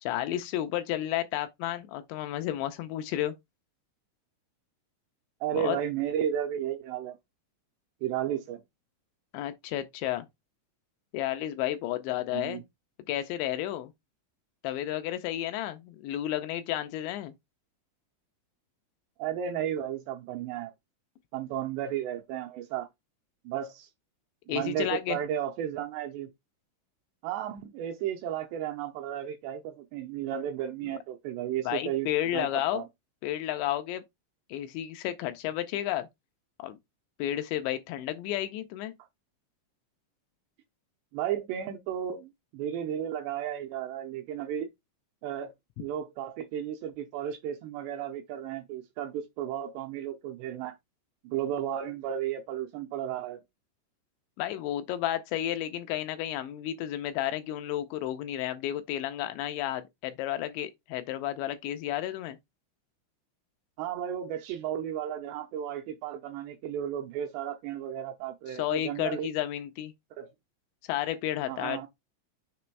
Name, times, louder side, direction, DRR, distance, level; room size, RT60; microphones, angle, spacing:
voice 1, 0.0-3.3 5.5-5.8 9.3-10.3 11.1-12.6 13.1-13.9 14.6-17.3 24.5-25.2 31.6-32.8 33.2-34.0 34.5-36.1 36.6-36.8 37.2-38.9 54.4-62.4 68.5-69.9 70.8-71.9, left 13 dB, 85° left, 2.7 m, -32 dB
voice 2, 5.4-7.2 8.0-8.6 12.3-12.6 19.2-20.7 21.3-22.9 23.5-23.9 24.5-26.3 27.2-32.1 32.3-32.5 32.7-32.9 41.1-44.7 45.2-50.7 51.2-53.4 63.8-69.3 70.2-70.3 71.5-71.9, right 10 dB, 80° right, 2.5 m, -33 dB
6.8 x 3.1 x 4.5 m
omnidirectional pair, 5.5 m